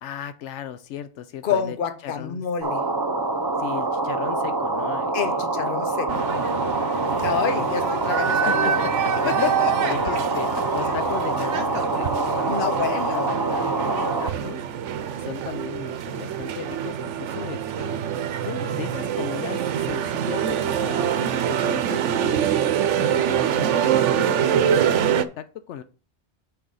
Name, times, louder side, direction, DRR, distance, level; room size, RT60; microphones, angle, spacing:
voice 1, 0.0-1.8 2.0-2.5 3.6-5.4 6.2-6.4 7.2-7.8 8.3-10.5 10.7-14.6 15.2-18.0 18.4-22.5 23.0-25.8, left 10 dB, 80° left, 0.9 m, -36 dB
voice 2, 1.4-2.8 5.1-6.2 7.2-8.8 9.2-9.9 12.5-13.3, left 7 dB, 55° left, 0.9 m, -27 dB
sound 1, 2.6-14.3, right 3 dB, 25° right, 0.5 m, -25 dB
sound 2, 6.1-25.2, right 9 dB, 90° right, 0.9 m, -25 dB
6.3 x 4.8 x 5.4 m
omnidirectional pair, 1.2 m